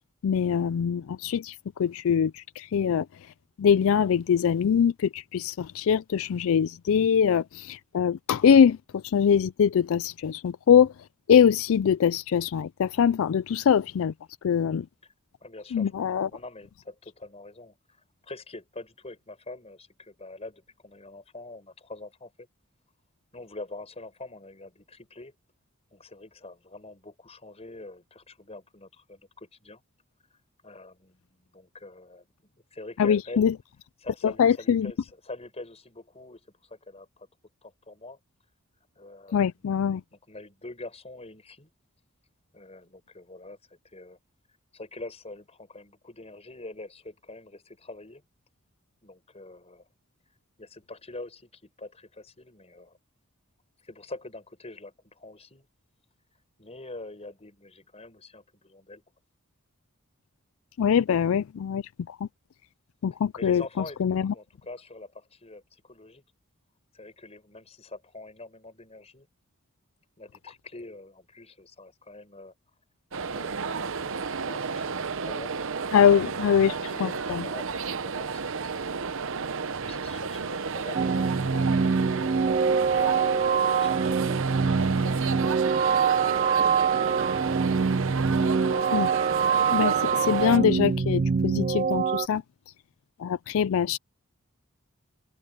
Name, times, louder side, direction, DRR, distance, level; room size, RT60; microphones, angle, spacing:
voice 1, 0.2-10.9 11.3-14.1 14.4-14.9 15.7-16.3 33.0-33.5 34.2-34.9 39.3-40.0 60.8-62.3 63.0-63.6 64.0-64.3 75.9-77.4 88.9-89.1 89.7-92.4 93.2-94.0, left 7 dB, 65° left, 0.3 m, -23 dB
voice 2, 15.4-22.5 23.3-25.3 25.9-29.8 30.6-33.5 34.0-37.3 37.6-38.2 39.0-39.8 40.3-41.7 42.5-44.2 44.7-48.2 49.0-49.9 50.6-53.0 53.8-55.7 56.6-59.0 63.4-66.2 66.9-69.3 70.2-72.5 73.2-75.6 76.1-79.1 79.8-82.1 82.4-85.2 85.5-86.8, left 2 dB, 30° left, 5.3 m, -45 dB
sound 1, 73.1-90.6, right 5 dB, 60° right, 0.9 m, -32 dB
sound 2, 80.9-92.3, right 6 dB, 40° right, 0.4 m, -24 dB
open air
head